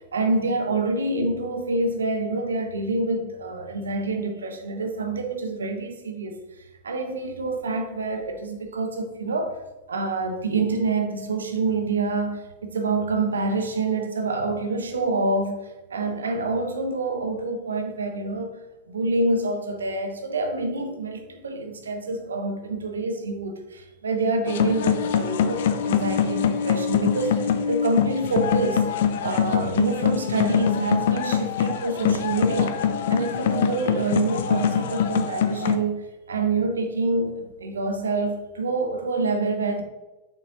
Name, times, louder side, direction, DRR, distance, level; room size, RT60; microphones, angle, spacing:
voice 1, 0.1-6.4 6.8-9.6 9.9-18.6 18.9-28.8 29.2-32.8 33.1-39.8, right 3 dB, 70° right, 0.7 m, -27 dB
sound 1, 24.5-35.8, left 8 dB, 55° left, 0.5 m, -24 dB
6.5 x 6.3 x 2.8 m
figure-of-eight pair, 90°, 0 cm